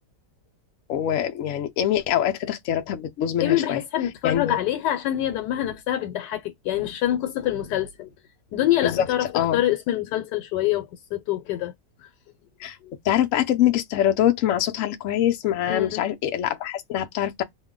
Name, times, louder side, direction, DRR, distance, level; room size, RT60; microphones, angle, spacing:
voice 1, 0.9-3.8 4.2-4.6 8.8-9.1 9.3-9.6 12.6-12.8 13.0-17.4, left 11 dB, 65° left, 0.8 m, -24 dB
voice 2, 3.4-8.1 8.5-11.7 12.8-12.9 15.7-16.0, left 13 dB, 85° left, 1.2 m, -25 dB
2.8 x 2.1 x 3.6 m
omnidirectional pair, 1.8 m